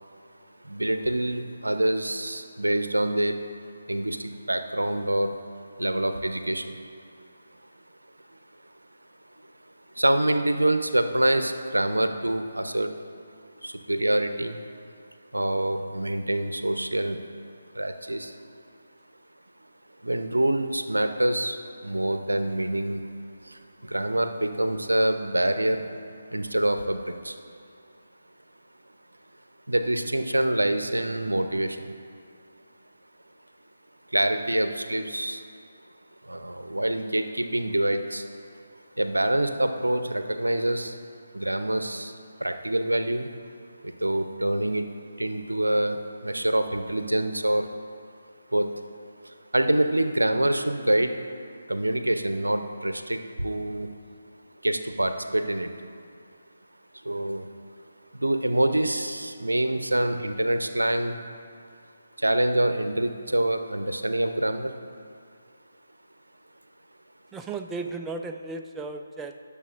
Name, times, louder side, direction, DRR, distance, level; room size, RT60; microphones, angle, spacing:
voice 1, 0.6-3.4 3.9-5.3 5.8-6.8 10.0-12.9 13.6-14.6 15.3-17.2 17.7-18.4 20.0-23.1 23.4-25.9 26.3-27.4 29.7-31.9 34.1-35.4 36.2-38.3 39.0-41.0 41.3-43.3 43.8-44.9 45.2-47.7 48.5-48.7 49.2-51.2 51.7-53.9 54.6-55.7 57.0-57.5 58.1-61.2 62.2-64.7, right 1 dB, 80° right, 8 dB, 0.6 m, -26 dB
voice 2, 67.3-69.4, right 3 dB, 10° right, 5 dB, 0.4 m, -35 dB
19.0 x 6.9 x 2.5 m, 2.3 s
figure-of-eight pair, 145°, 0 cm